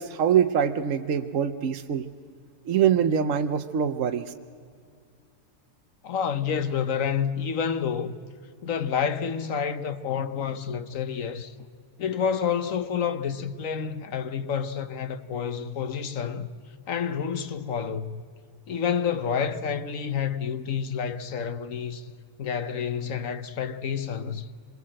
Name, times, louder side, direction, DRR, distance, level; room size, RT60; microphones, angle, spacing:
voice 1, 0.0-2.1 2.7-4.3, right 8 dB, 60° right, 1.0 m, -24 dB
voice 2, 6.0-8.2 8.6-11.5 12.0-16.5 16.9-18.2 18.7-22.1 22.4-24.5, left 7 dB, 60° left, 1.2 m, -29 dB
26.5 x 21.5 x 7.6 m
omnidirectional pair, 1.7 m